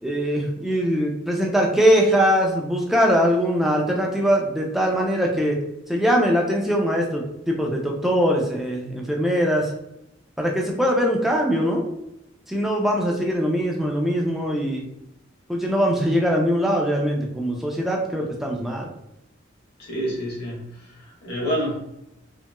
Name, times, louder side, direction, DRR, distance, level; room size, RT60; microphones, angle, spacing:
voice 1, 0.0-5.6 5.9-9.7 10.4-11.9 12.5-14.9 15.5-18.9, equal, ahead, -1 dB, 0.4 m, -22 dB
voice 2, 19.8-21.8, equal, 55° left, -4 dB, 1.0 m, -28 dB
2.9 x 2.9 x 2.2 m, 0.85 s
head